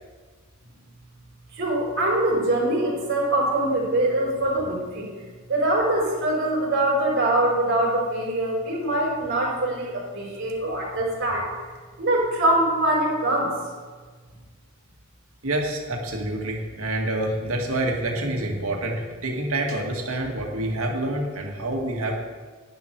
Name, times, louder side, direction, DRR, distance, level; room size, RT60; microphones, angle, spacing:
voice 1, 1.5-5.1 5.5-11.5 12.0-13.5, right 1 dB, 55° right, -5 dB, 4.4 m, -23 dB
voice 2, 15.4-22.2, right 1 dB, 90° right, 1 dB, 2.0 m, -27 dB
11.5 x 10.5 x 4.6 m, 1.4 s
head